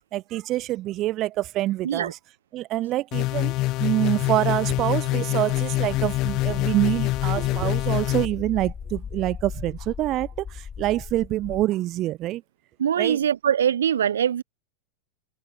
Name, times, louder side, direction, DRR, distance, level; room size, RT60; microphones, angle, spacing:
voice 1, 0.1-2.2 2.5-3.5 3.8-12.4 13.0-13.2, right 15 dB, 35° right, 0.9 m, -26 dB
sound 1, 3.1-8.3, left 19 dB, 40° left, 1.6 m, -25 dB
sound 2, 5.7-11.6, left 6 dB, 20° left, 1.8 m, -37 dB
voice 2, 12.8-14.4, right 9 dB, 65° right, 0.5 m, -22 dB
open air
figure-of-eight pair, 90°, 0 cm